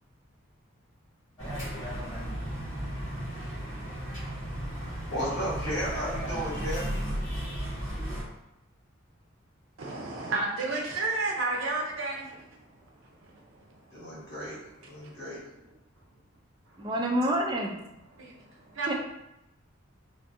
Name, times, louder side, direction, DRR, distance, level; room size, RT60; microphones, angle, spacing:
sound 1, 1.4-8.2, equal, 20° left, 1.2 m, -34 dB
voice 1, 4.8-6.9 13.9-15.4, equal, 55° left, -7 dB, 1.2 m, -34 dB
voice 2, 9.8-14.3 15.0-15.5 18.1-18.9, right 3 dB, 75° right, 0 dB, 0.6 m, -33 dB
voice 3, 16.8-17.8 18.8-18.9, right 1 dB, 20° right, 0 dB, 0.3 m, -27 dB
2.5 x 2.4 x 2.6 m, 0.87 s
head